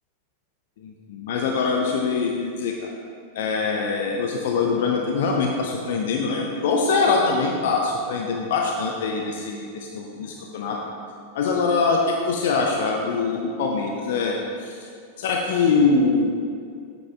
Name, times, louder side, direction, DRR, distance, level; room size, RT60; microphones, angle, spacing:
voice 1, 0.8-2.9 3.3-10.8 11.3-14.9 15.2-16.3, left 4 dB, 55° left, 0 dB, 0.7 m, -23 dB
9.1 x 6.3 x 3.6 m, 2.3 s
figure-of-eight pair, 90°, 0 cm